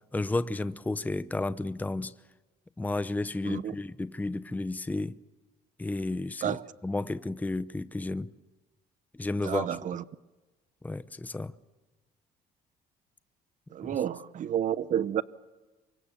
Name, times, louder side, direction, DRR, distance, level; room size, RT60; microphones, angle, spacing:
voice 1, 0.1-2.1 2.8-5.1 5.8-6.6 6.8-8.3 9.2-9.7 10.8-11.5, left 2 dB, 10° left, 0.8 m, -32 dB
voice 2, 3.4-3.7 6.4-6.7 9.4-10.0 13.7-15.2, right 10 dB, 50° right, 0.9 m, -30 dB
28.5 x 24.5 x 7.2 m
cardioid pair, 110°, 17 cm